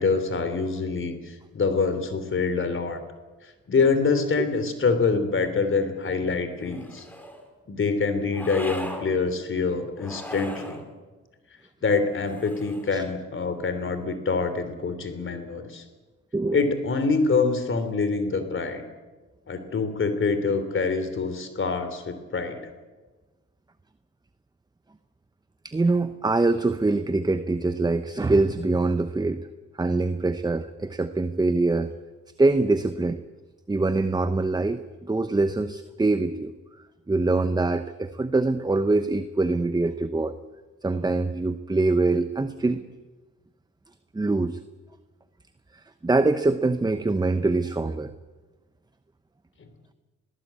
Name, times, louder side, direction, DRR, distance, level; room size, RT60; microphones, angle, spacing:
voice 1, 0.0-3.0 3.7-7.1 7.7-10.8 11.8-15.8 16.5-18.8 19.5-22.7 49.6-49.7, left 4 dB, 40° left, 9 dB, 3.4 m, -25 dB
sound 1, 6.6-7.4 8.3-9.1 10.0-10.8 12.2-13.0, equal, 5° left, 3.9 m, -39 dB
voice 2, 25.6-29.5 29.8-31.9 32.4-33.2 33.7-36.5 37.1-40.3 40.8-42.9 44.1-44.6 46.0-48.1, right 3 dB, 15° right, 11 dB, 0.9 m, -24 dB
21.0 x 17.5 x 8.4 m, 1.3 s
cardioid pair, 90°, 30 cm